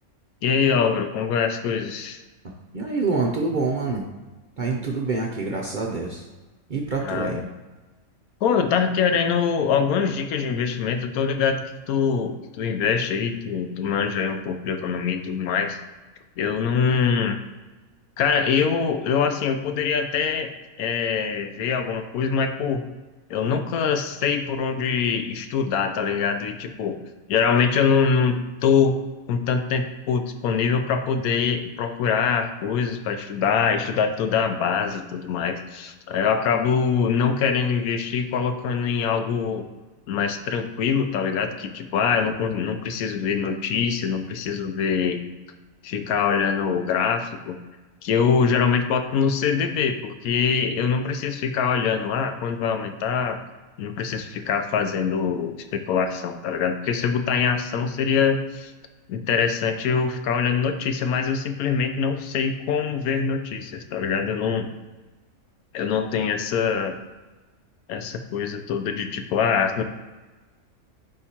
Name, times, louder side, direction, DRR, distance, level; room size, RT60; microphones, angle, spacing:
voice 1, 0.4-2.2 7.0-7.4 8.4-15.8 16.4-17.4 18.2-20.5 20.8-22.8 23.3-27.0 27.3-29.0 29.3-39.7 40.1-45.3 45.8-47.6 48.0-53.4 53.8-58.7 59.1-64.7 65.7-67.0 67.9-69.8, left 6 dB, 90° left, 7 dB, 1.1 m, -24 dB
voice 2, 2.7-4.0 4.6-6.3 6.7-7.4, right 3 dB, 55° right, -1 dB, 0.5 m, -26 dB
9.6 x 3.6 x 2.9 m, 1.2 s
omnidirectional pair, 1.5 m